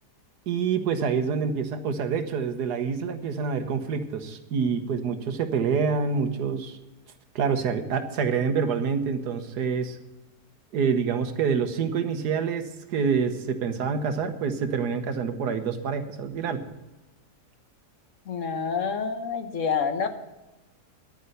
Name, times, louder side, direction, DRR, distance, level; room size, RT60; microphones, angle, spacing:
voice 1, 0.5-6.8 7.3-10.0 10.7-16.6, right 6 dB, 80° right, 8 dB, 1.6 m, -27 dB
voice 2, 18.3-20.1, left 6 dB, 55° left, 8 dB, 1.3 m, -27 dB
10.5 x 9.7 x 7.9 m, 1.0 s
omnidirectional pair, 1.7 m